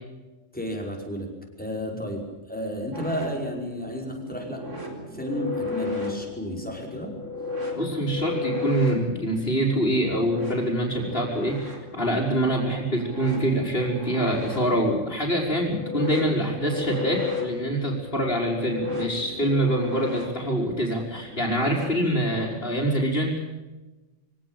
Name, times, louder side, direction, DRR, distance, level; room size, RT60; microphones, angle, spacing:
voice 1, 0.5-1.3 1.6-4.7 5.1-7.1, equal, 5° left, 0 dB, 5.5 m, -32 dB
Sci-Fi Interference, 2.9-22.5, left 3 dB, 75° right, 4.6 m, -35 dB
voice 2, 7.7-23.4, right 1 dB, 50° left, -5 dB, 5.3 m, -25 dB
24.0 x 18.0 x 9.1 m, 1.1 s
omnidirectional pair, 1.3 m